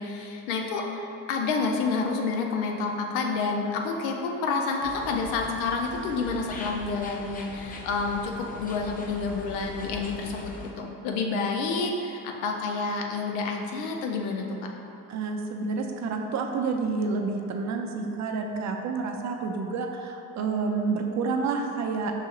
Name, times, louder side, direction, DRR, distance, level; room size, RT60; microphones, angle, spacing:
voice 1, 0.0-14.7, left 4 dB, 80° left, 2 dB, 0.6 m, -29 dB
sound 1, 4.8-10.7, left 2 dB, 20° left, 0.4 m, -41 dB
voice 2, 15.1-22.1, right 4 dB, 40° right, 3 dB, 0.5 m, -29 dB
5.6 x 2.7 x 2.4 m, 2.7 s
hypercardioid pair, 55°, 47 cm